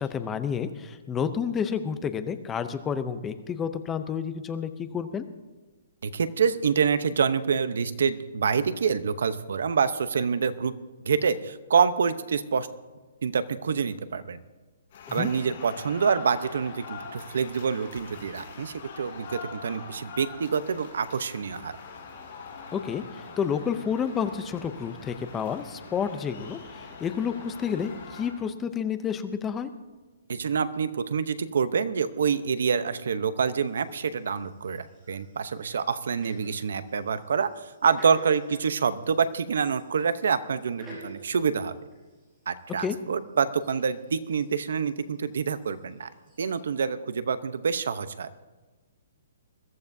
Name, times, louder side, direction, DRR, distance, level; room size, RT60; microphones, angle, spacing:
voice 1, 0.0-5.3 15.1-15.3 22.7-26.6 27.0-29.7 42.8-43.0, left 7 dB, 10° left, 11 dB, 0.5 m, -30 dB
voice 2, 6.0-10.7 11.0-12.7 13.2-14.4 15.1-21.7 30.3-41.7 42.5-46.1 46.4-48.3, right 6 dB, 70° right, 13 dB, 0.8 m, -26 dB
sound 1, 14.9-28.3, left 5 dB, 35° left, 5.4 m, -43 dB
sound 2, 33.7-46.6, right 1 dB, 10° right, 5.5 m, -52 dB
21.5 x 14.0 x 2.7 m, 1.2 s
hypercardioid pair, 175°, 0 cm